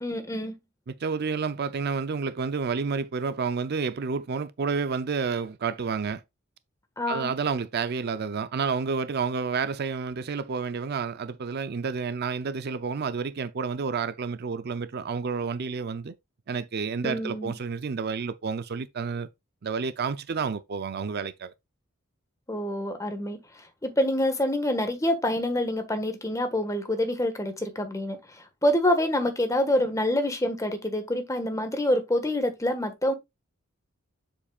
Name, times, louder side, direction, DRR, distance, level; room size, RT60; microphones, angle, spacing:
voice 1, 0.0-0.5 7.0-7.3 17.0-17.5 22.5-23.4 23.8-33.1, left 1 dB, 15° left, 1.4 m, -26 dB
voice 2, 0.9-6.2 7.1-16.1 16.5-19.3 19.6-21.5, right 5 dB, 50° right, 0.5 m, -30 dB
7.4 x 7.0 x 2.3 m
head